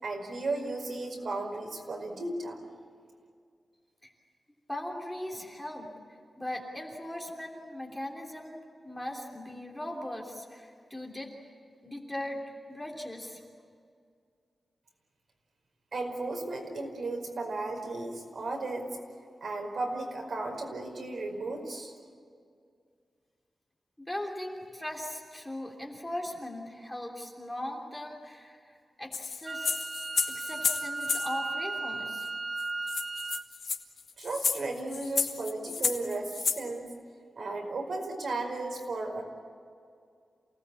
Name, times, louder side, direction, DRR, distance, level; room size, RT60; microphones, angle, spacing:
voice 1, 0.0-2.6 15.9-18.9 19.4-21.9 34.2-36.9 37.4-39.2, right 2 dB, 60° right, 2 dB, 5.1 m, -35 dB
voice 2, 4.7-5.9 6.4-11.3 11.8-12.4 12.7-13.4 24.0-29.7 30.3-32.3, left 1 dB, 5° left, -1 dB, 3.3 m, -39 dB
sound 1, 29.1-31.3 32.2-32.3 32.6-32.7 32.9-36.6, left 5 dB, 70° left, 2.0 m, -31 dB
Wind instrument woodwind instrument, 29.5-33.5, right 3 dB, 40° right, 0.5 m, -35 dB
29.0 x 18.5 x 8.6 m, 2.2 s
wide cardioid pair, 175°, 0 cm